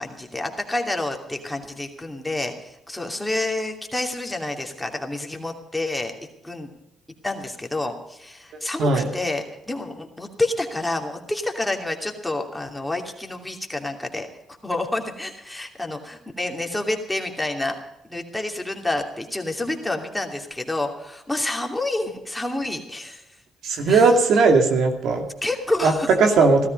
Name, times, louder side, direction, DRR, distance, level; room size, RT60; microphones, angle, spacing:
voice 1, 0.0-6.1 6.4-6.7 7.2-14.3 14.6-17.8 18.1-23.2 23.8-24.1 25.4-26.1, left 2 dB, 10° left, 2 dB, 2.7 m, -28 dB
voice 2, 23.6-25.3 25.8-25.9 26.2-26.7, right 4 dB, 75° right, 5 dB, 2.4 m, -17 dB
16.5 x 13.5 x 5.4 m, 0.86 s
cardioid pair, 90°, 0 cm